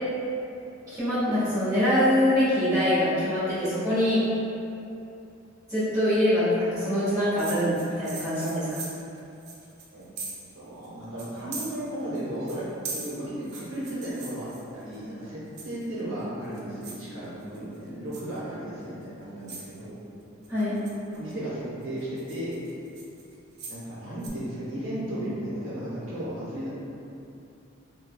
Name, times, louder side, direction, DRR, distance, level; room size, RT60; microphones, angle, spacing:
voice 1, 0.9-4.2 5.7-8.7 20.5-20.8, left 1 dB, 15° right, -14 dB, 1.4 m, -24 dB
sound 1, 7.4-10.5 10.8-10.9 11.2-12.2 12.5-15.0 15.6-16.0 16.4-17.0 17.4-17.8 18.1-18.4 19.0-19.1 19.5-19.8 20.4-21.3 21.8-23.8 24.2-24.3, right 3 dB, 55° right, 0.4 m, -40 dB
voice 2, 10.6-12.6 12.9-20.0 21.1-22.6 23.7-26.7, right 1 dB, 75° right, -9 dB, 0.9 m, -35 dB
3.6 x 2.2 x 2.2 m, 2.7 s
head